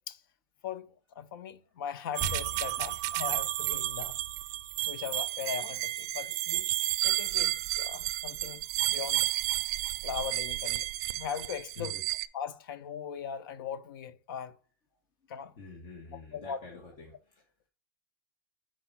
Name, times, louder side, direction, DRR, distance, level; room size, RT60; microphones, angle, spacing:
voice 1, 0.6-4.2 4.9-6.7 7.0-9.3 10.0-10.9 11.1-12.0 12.3-14.5 15.3-15.5 16.1-16.6, left 8 dB, 80° left, 0.6 m, -39 dB
sound 1, 2.1-12.3, right 17 dB, 55° right, 0.4 m, -32 dB
sound 2, 2.2-5.1, right 1 dB, 15° left, 3.8 m, -43 dB
voice 2, 15.6-17.4, left 3 dB, 45° left, 1.8 m, -47 dB
5.0 x 4.8 x 5.8 m
supercardioid pair, 155°, 12 cm